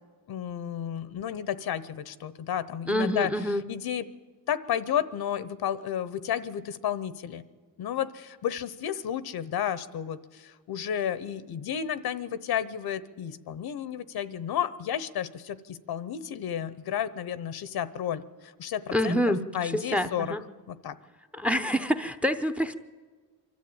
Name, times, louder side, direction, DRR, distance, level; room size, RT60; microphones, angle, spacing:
voice 1, 0.3-3.3 3.7-4.1 4.5-7.4 7.8-19.2 19.5-20.4 20.7-21.0, left 9 dB, 70° left, 15 dB, 0.9 m, -32 dB
voice 2, 2.9-3.6 18.9-20.4 21.3-22.8, equal, 5° right, 10 dB, 0.8 m, -27 dB
24.5 x 13.0 x 8.7 m, 1.5 s
cardioid pair, 110°, 39 cm